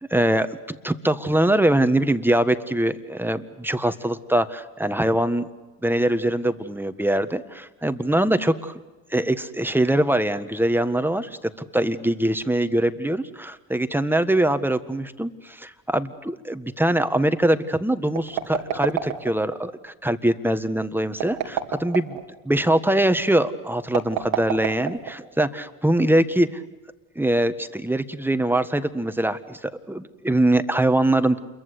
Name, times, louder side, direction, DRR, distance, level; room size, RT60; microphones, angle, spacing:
voice 1, 0.1-5.5 5.8-8.8 9.1-22.2 22.4-26.5 27.1-31.4, right 1 dB, 5° right, 10 dB, 1.6 m, -23 dB
sound 1, 18.1-19.6 21.1-22.2 23.9-25.4, right 10 dB, 85° right, 2.8 m, -28 dB
28.5 x 23.0 x 8.4 m, 1.1 s
supercardioid pair, 75°, 40 cm